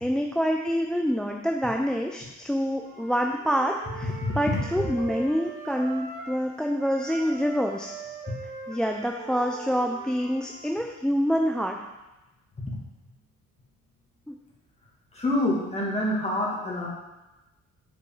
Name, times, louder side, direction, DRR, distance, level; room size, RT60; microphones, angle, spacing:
voice 1, 0.0-7.9 8.7-11.8 14.3-14.4, equal, 5° left, 2 dB, 0.4 m, -26 dB
Wind instrument woodwind instrument, 2.8-6.5 6.8-10.7, right 4 dB, 35° right, 1.7 m, -41 dB
voice 2, 4.2-4.6 5.0-5.1 12.7-12.8 15.1-16.9, left 1 dB, 20° left, -4 dB, 2.0 m, -27 dB
6.5 x 5.0 x 3.7 m, 1.0 s
cardioid pair, 90°, 30 cm